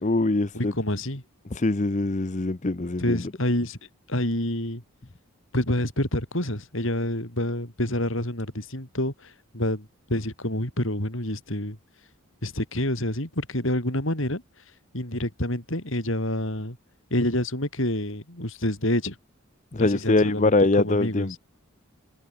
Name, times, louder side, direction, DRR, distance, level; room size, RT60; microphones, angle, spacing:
voice 1, 0.0-0.7 1.5-3.3 19.7-21.4, left 2 dB, 35° left, 0.7 m, -23 dB
voice 2, 0.5-1.2 3.0-3.8 4.1-4.8 5.5-11.8 12.4-14.4 14.9-16.8 17.1-19.2 19.8-20.5 20.8-21.4, left 1 dB, 60° left, 5.9 m, -27 dB
head